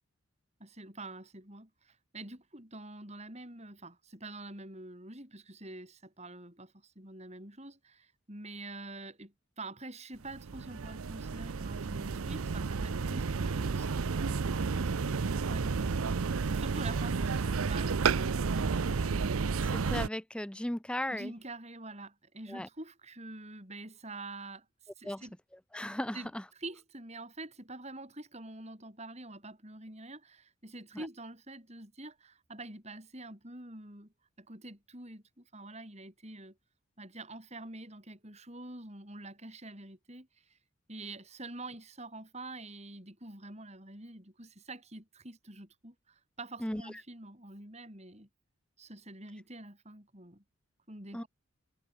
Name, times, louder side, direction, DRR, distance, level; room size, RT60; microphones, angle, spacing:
voice 1, 0.6-15.9 16.2-19.2 21.1-24.7 25.0-25.3 26.1-26.3 26.6-36.6 37.0-40.6 40.9-48.3 48.8-50.4 50.9-51.3, right 2 dB, 30° right, 7.9 m, -46 dB
sound 1, 10.3-20.1, right 5 dB, 85° right, 0.6 m, -31 dB
voice 2, 19.6-21.3 22.5-22.7 25.0-25.3 25.7-26.4 30.9-31.1 46.6-47.0 51.1-51.2, left 1 dB, 5° left, 0.6 m, -36 dB
head